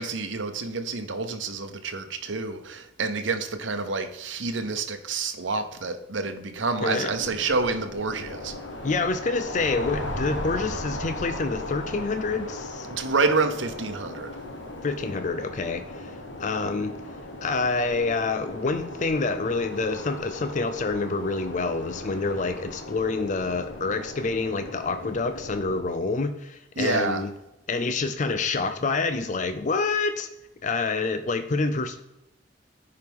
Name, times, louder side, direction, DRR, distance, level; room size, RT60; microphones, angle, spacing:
voice 1, 0.0-8.5 12.9-14.3 26.8-27.2, right 3 dB, 85° right, 0.9 m, -28 dB
voice 2, 6.8-7.1 8.8-12.9 14.8-16.1 16.4-16.9 17.4-27.3 27.7-30.3 30.6-32.0, left 3 dB, 40° left, 0.5 m, -27 dB
sound 1, 7.1-25.8, left 1 dB, 85° left, 1.4 m, -37 dB
10.5 x 4.8 x 3.6 m
head